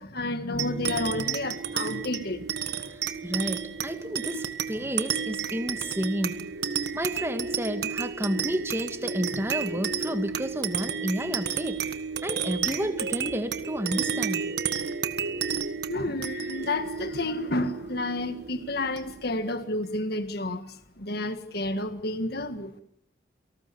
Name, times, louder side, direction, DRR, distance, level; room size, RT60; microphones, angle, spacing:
voice 1, 0.0-2.5 4.8-4.9 15.9-20.6 21.0-22.8, left 2 dB, 55° left, 9 dB, 1.8 m, -30 dB
sound 1, 0.6-19.4, right 6 dB, 55° right, 1.6 m, -32 dB
voice 2, 2.9-6.4 6.9-11.8 12.2-14.4, equal, 10° right, 8 dB, 1.9 m, -31 dB
28.5 x 19.0 x 7.1 m, 0.72 s
head